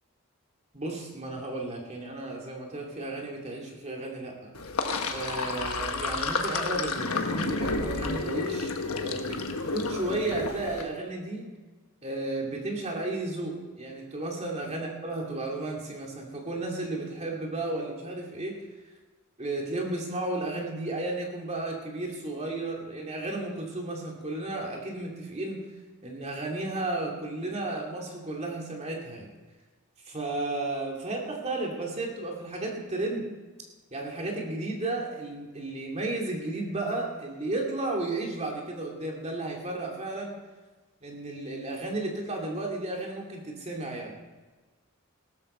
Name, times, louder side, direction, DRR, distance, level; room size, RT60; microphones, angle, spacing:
voice 1, 0.7-4.5 5.1-8.7 9.0-11.5 12.0-18.6 19.4-25.6 26.0-29.3 30.1-33.3 33.9-40.3 41.0-44.2, right 2 dB, 30° right, 0 dB, 2.5 m, -33 dB
Sink (filling or washing), 4.5-10.8, left 3 dB, 75° left, 1.3 m, -31 dB
17.0 x 13.5 x 4.4 m, 1.3 s
head